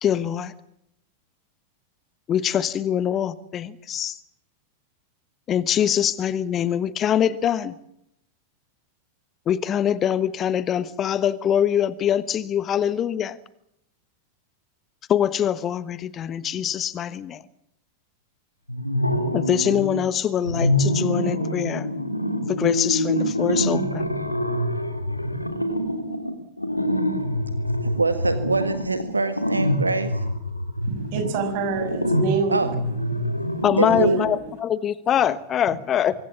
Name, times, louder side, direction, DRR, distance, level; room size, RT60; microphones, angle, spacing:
voice 1, 0.0-0.5 2.3-4.2 5.5-7.8 9.5-13.4 15.1-17.4 19.3-21.9 22.5-24.1 33.6-36.1, left 9 dB, 30° left, 16 dB, 1.1 m, -23 dB
sound 1, 18.7-20.0 20.4-34.3, equal, 85° left, 2.8 m, -25 dB
voice 2, 27.8-30.2 32.5-32.7 33.8-34.3, right 3 dB, 80° right, 10 dB, 1.6 m, -24 dB
voice 3, 30.9-32.7 33.9-34.4, right 4 dB, 50° right, 8 dB, 6.0 m, -26 dB
25.0 x 23.0 x 7.3 m, 0.78 s
figure-of-eight pair, 90°, 0 cm